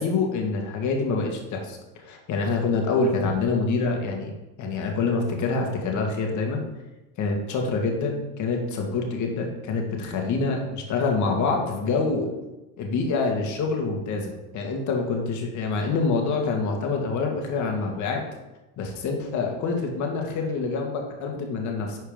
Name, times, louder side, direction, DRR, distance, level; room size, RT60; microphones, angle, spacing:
voice 1, 0.0-4.3 4.6-6.6 7.2-12.3 12.8-18.2 18.8-22.0, left 4 dB, 40° left, 2 dB, 2.0 m, -26 dB
11.0 x 4.5 x 5.2 m, 1.0 s
supercardioid pair, 135°, 43 cm